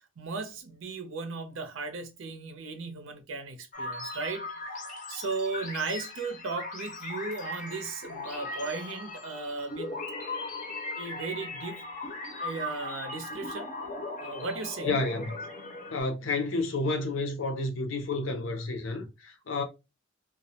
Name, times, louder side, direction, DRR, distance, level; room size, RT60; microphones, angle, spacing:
voice 1, 0.2-4.5 5.1-10.0 11.0-11.9 12.4-13.7 14.2-14.9, right 4 dB, 85° right, 0.6 m, -36 dB
sound 1, 3.7-16.0, left 2 dB, 40° left, 0.5 m, -38 dB
voice 2, 14.8-15.4 15.9-19.6, left 2 dB, 85° left, 0.6 m, -30 dB
2.3 x 2.1 x 2.7 m
head